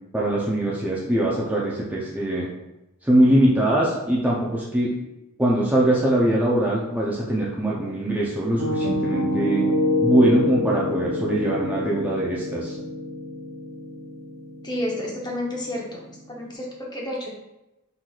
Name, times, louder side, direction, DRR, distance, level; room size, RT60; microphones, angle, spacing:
voice 1, 0.1-2.5 3.0-4.9 5.4-9.7 10.0-12.8, right 1 dB, 5° right, -6 dB, 0.5 m, -22 dB
Piano, 8.6-16.4, left 1 dB, 70° right, 0.7 m, -27 dB
voice 2, 14.6-16.0 16.3-17.3, left 1 dB, 20° left, -2 dB, 0.8 m, -30 dB
4.5 x 3.9 x 2.4 m, 0.95 s
head